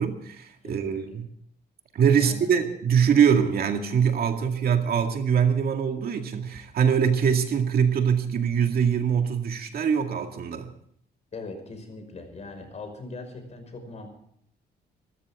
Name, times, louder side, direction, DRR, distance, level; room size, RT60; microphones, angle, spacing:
voice 1, 0.0-1.3 1.9-10.7, right 7 dB, 60° right, 5 dB, 2.2 m, -23 dB
voice 2, 0.6-1.0 2.1-2.5 11.3-14.1, left 3 dB, 40° left, 6 dB, 5.5 m, -40 dB
25.5 x 13.5 x 3.7 m, 0.69 s
cardioid pair, 130°, 18 cm